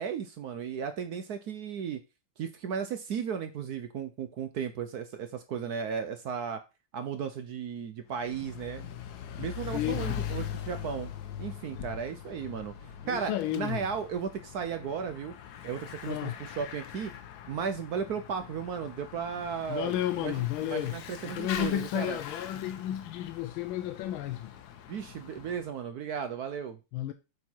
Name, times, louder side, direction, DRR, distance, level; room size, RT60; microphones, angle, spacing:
voice 1, 0.0-2.0 2.4-6.6 6.9-8.9 9.4-11.1 11.4-12.7 13.1-15.3 15.6-17.1 17.5-22.2 24.9-26.8, right 7 dB, 70° right, 0.9 m, -35 dB
Bicycle / Mechanisms, 8.1-25.7, left 9 dB, 65° left, 1.1 m, -42 dB
voice 2, 9.7-10.2 13.0-13.9 16.1-16.4 19.7-21.0 21.2-24.5 26.9-27.1, left 12 dB, 80° left, 1.4 m, -32 dB
8.3 x 4.3 x 4.5 m
omnidirectional pair, 2.3 m